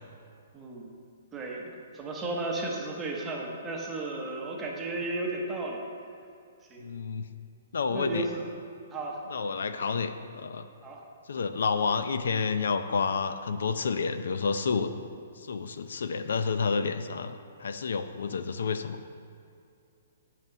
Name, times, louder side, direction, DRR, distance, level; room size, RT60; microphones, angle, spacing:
voice 1, 0.5-1.0 1.3-5.8 6.7-6.9 7.9-8.5 8.9-9.2 10.8-11.0, right 2 dB, 10° right, -1 dB, 0.8 m, -34 dB
voice 2, 6.8-7.2 7.7-8.3 9.3-10.7 11.3-14.9 15.4-19.0, left 5 dB, 75° left, 10 dB, 0.5 m, -30 dB
9.0 x 5.8 x 6.9 m, 2.4 s
hypercardioid pair, 180°, 0 cm